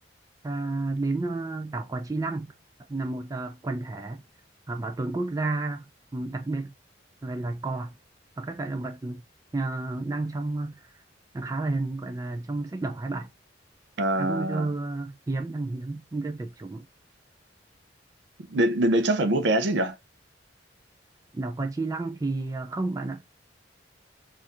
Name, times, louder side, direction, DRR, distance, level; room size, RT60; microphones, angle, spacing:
voice 1, 0.4-2.5 2.9-4.2 4.7-5.9 6.1-6.7 7.2-8.0 8.4-9.2 9.5-10.9 11.3-13.3 14.2-16.8 21.3-23.3, right 2 dB, 20° right, 0.3 m, -31 dB
voice 2, 14.0-14.7 18.5-20.0, right 1 dB, 70° right, 0.5 m, -24 dB
4.2 x 2.5 x 2.4 m
head